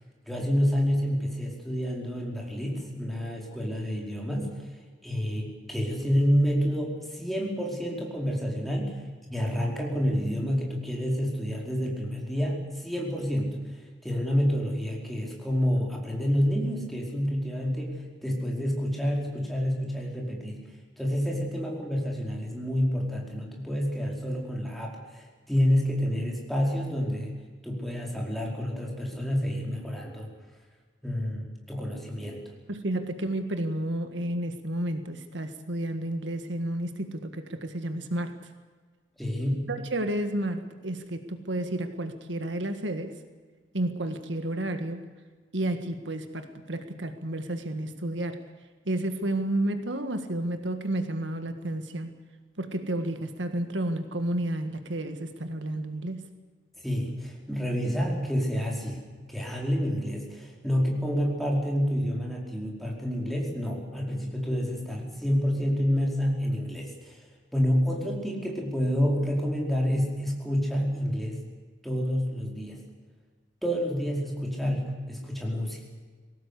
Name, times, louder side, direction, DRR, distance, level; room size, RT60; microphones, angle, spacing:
voice 1, 0.2-4.6 5.0-9.0 9.3-13.6 14.0-20.6 21.0-27.3 27.6-30.3 31.0-32.4 39.2-39.6 56.8-59.0 59.3-67.2 67.5-71.4 71.8-72.8 73.6-75.9, equal, ahead, -1 dB, 4.8 m, -28 dB
voice 2, 32.7-38.3 39.7-43.1 43.7-45.1 45.5-48.4 48.9-52.1 52.6-56.2, right 1 dB, 75° right, 8 dB, 1.8 m, -31 dB
22.0 x 18.0 x 8.4 m, 1.5 s
head